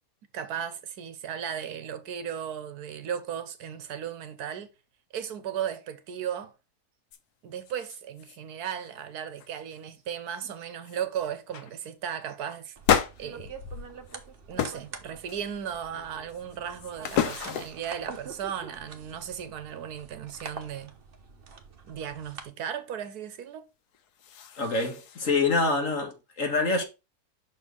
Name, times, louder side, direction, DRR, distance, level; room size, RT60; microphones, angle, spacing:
voice 1, 0.3-4.7 5.1-6.5 7.4-12.8 13.2-13.5 14.5-21.0 21.9-23.7, right 8 dB, 80° right, 1.4 m, -36 dB
sound 1, 7.1-7.2 7.6-8.4 8.6-9.0 9.4-9.8 10.4-10.5 10.8-11.1 11.5-11.7 12.8-14.2 14.6-14.9 15.3-15.8 16.3-17.9 23.9-25.3, left 9 dB, 90° left, 1.3 m, -31 dB
sound 2, 12.8-22.4, right 5 dB, 40° right, 1.0 m, -45 dB
voice 2, 24.6-26.8, left 3 dB, 55° left, 1.9 m, -26 dB
6.0 x 4.4 x 5.0 m
omnidirectional pair, 1.6 m